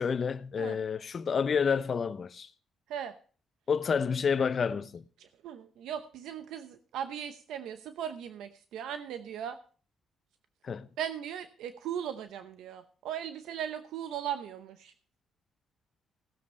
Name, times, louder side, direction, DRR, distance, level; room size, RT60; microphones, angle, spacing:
voice 1, 0.0-2.5 3.7-5.0 10.6-10.9, left 6 dB, 45° left, 0.8 m, -29 dB
voice 2, 5.2-9.6 11.0-14.9, right 9 dB, 85° right, 0.8 m, -38 dB
17.5 x 7.4 x 4.3 m
cardioid pair, 90°, 0 cm